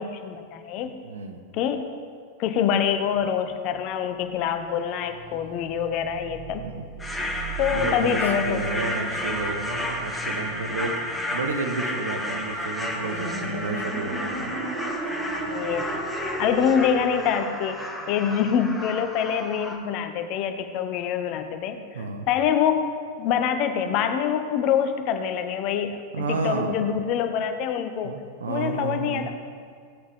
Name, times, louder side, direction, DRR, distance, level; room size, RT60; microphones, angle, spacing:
voice 1, 0.0-0.9 1.5-1.9 2.4-6.7 7.6-9.0 15.5-17.8 18.1-22.9 23.2-28.1 28.5-29.3, left 8 dB, 40° left, 8 dB, 0.9 m, -25 dB
voice 2, 1.0-1.4 6.6-6.9 7.7-14.5 21.9-22.3 26.1-26.7 28.0-29.3, right 4 dB, 65° right, 5 dB, 1.2 m, -31 dB
sound 1, 4.2-17.5, right 2 dB, 45° right, 2.9 m, -37 dB
sound 2, 7.0-19.8, left 1 dB, 5° left, 1.4 m, -32 dB
16.0 x 8.6 x 3.6 m, 2.1 s
figure-of-eight pair, 90°, 0 cm